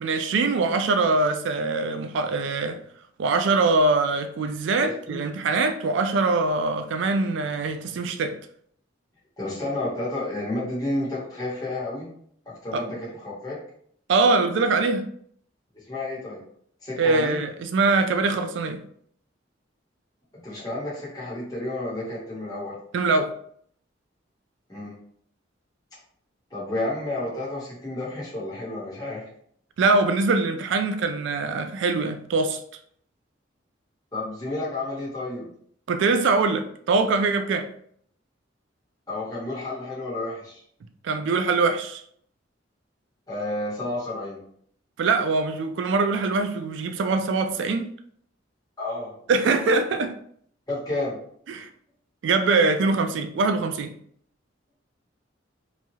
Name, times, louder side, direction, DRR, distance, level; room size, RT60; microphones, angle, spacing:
voice 1, 0.0-2.8 3.2-8.3 12.7-12.8 14.1-15.1 17.0-18.8 22.9-23.3 29.8-32.6 35.9-37.7 41.0-42.0 45.0-47.9 49.3-50.1 51.5-51.7 52.2-53.9, right 3 dB, 65° right, 8 dB, 0.3 m, -23 dB
voice 2, 4.8-5.2 9.4-12.1 12.5-13.6 15.7-16.4 16.8-17.4 20.4-22.7 24.7-24.9 26.5-29.2 34.1-35.5 39.1-40.6 43.3-44.4 48.8-49.1 50.7-51.2, left 2 dB, 20° left, -8 dB, 1.0 m, -31 dB
3.0 x 2.2 x 2.7 m, 0.64 s
head